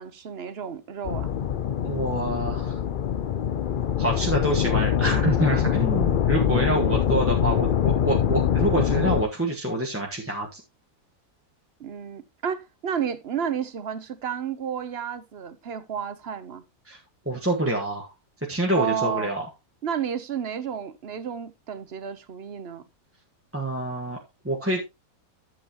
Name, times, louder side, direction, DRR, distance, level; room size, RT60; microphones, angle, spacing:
voice 1, 0.0-1.3 6.5-7.1 11.8-16.6 18.7-19.3 19.8-22.8, right 7 dB, 50° right, 1.0 m, -32 dB
sound 1, 1.0-9.2, left 9 dB, 55° left, 0.6 m, -24 dB
voice 2, 1.8-2.8 4.0-10.6 16.9-17.0 17.2-18.1 18.5-19.4 23.5-24.2 24.4-24.8, right 1 dB, 10° right, 1.4 m, -26 dB
11.0 x 7.9 x 3.0 m
omnidirectional pair, 1.5 m